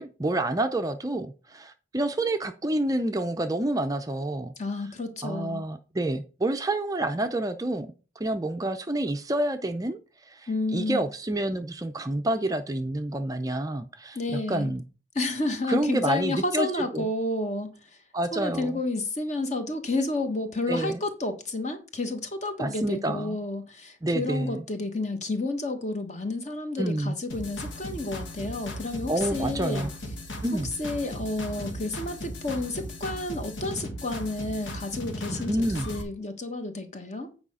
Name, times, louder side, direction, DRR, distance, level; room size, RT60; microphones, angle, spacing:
voice 1, 0.0-4.5 5.2-7.9 8.2-10.0 10.3-14.8 15.7-17.1 18.1-18.8 20.7-21.0 22.6-23.4 24.0-24.6 26.8-27.2 29.1-29.9 30.4-30.7 35.4-35.9, right 1 dB, 20° right, 0.5 m, -28 dB
voice 2, 4.6-5.6 10.5-11.0 14.1-14.7 15.1-18.0 18.3-29.9 30.5-37.3, left 2 dB, 35° left, 1.4 m, -31 dB
sound 1, 27.3-36.0, left 1 dB, 80° left, 1.7 m, -37 dB
8.8 x 4.8 x 5.5 m
head